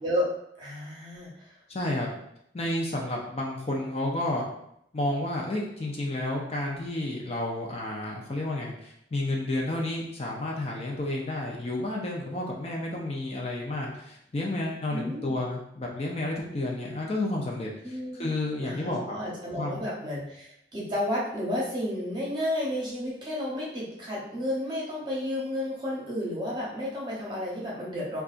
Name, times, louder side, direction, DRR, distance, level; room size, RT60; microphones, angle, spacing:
voice 1, 0.0-1.6 14.9-15.4 17.8-18.3 18.6-28.2, left 1 dB, 25° right, -6 dB, 0.9 m, -32 dB
voice 2, 1.7-2.1 2.5-4.4 4.9-19.2 19.6-19.8, left 1 dB, 35° left, -2 dB, 0.4 m, -31 dB
4.0 x 2.3 x 2.5 m, 0.75 s
head